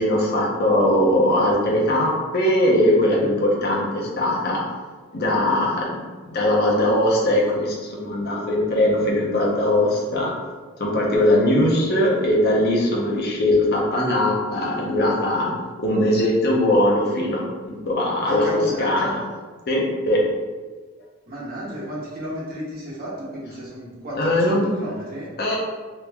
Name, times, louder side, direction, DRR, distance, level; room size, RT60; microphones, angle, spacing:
voice 1, 0.0-4.6 5.1-6.0 6.3-10.3 10.8-15.5 15.8-18.5 18.8-19.1 19.7-20.2 24.2-24.7 25.4-25.6, left 1 dB, 55° left, -3 dB, 0.6 m, -20 dB
voice 2, 18.3-19.2 21.3-25.3, equal, 50° right, -7 dB, 1.1 m, -33 dB
3.0 x 2.5 x 3.4 m, 1.4 s
head